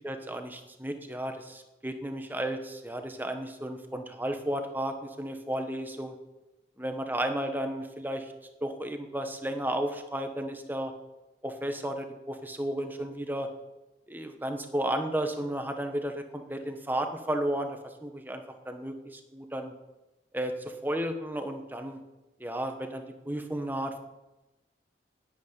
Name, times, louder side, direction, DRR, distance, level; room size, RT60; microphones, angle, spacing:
voice 1, 0.0-6.2 6.8-8.3 8.6-10.9 11.4-13.5 14.1-19.7 20.3-22.0 22.4-24.0, right 1 dB, 10° right, 6 dB, 1.3 m, -33 dB
10.5 x 8.4 x 9.9 m, 1.0 s
head